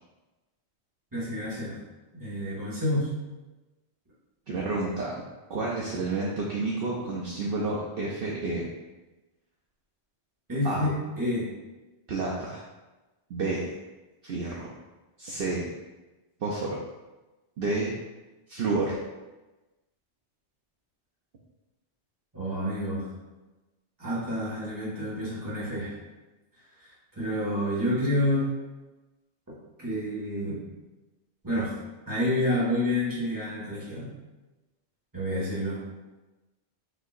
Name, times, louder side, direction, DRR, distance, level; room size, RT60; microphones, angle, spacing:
voice 1, 1.1-1.8 2.1-3.1 10.5-11.5 22.3-23.1 24.0-25.9 27.1-28.5 29.8-30.6 31.4-31.7 32.1-34.1 35.1-35.8, left 1 dB, 15° right, -8 dB, 1.6 m, -28 dB
voice 2, 4.5-5.1 5.5-8.7 10.6-10.9 12.1-12.6 13.3-13.7 14.2-14.7 15.2-15.7 16.4-16.8 17.6-17.9 18.5-19.0, right 3 dB, 60° right, -4 dB, 0.8 m, -30 dB
6.3 x 2.8 x 2.4 m, 1.1 s
omnidirectional pair, 1.2 m